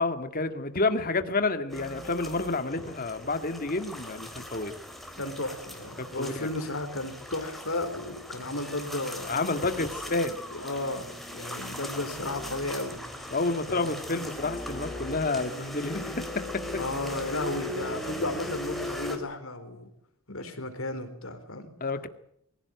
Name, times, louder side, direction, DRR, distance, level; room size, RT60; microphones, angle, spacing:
voice 1, 0.0-4.7 6.0-6.5 9.3-10.4 13.3-16.1 16.7-16.8 20.3-20.4 21.8-22.1, left 3 dB, 40° left, 1.9 m, -29 dB
sound 1, 1.7-19.2, left 1 dB, ahead, 3.8 m, -39 dB
voice 2, 5.2-9.3 9.7-9.9 10.5-13.0 13.7-13.9 16.8-19.9 20.3-21.7, left 2 dB, 70° left, 4.5 m, -34 dB
24.0 x 16.5 x 9.4 m
head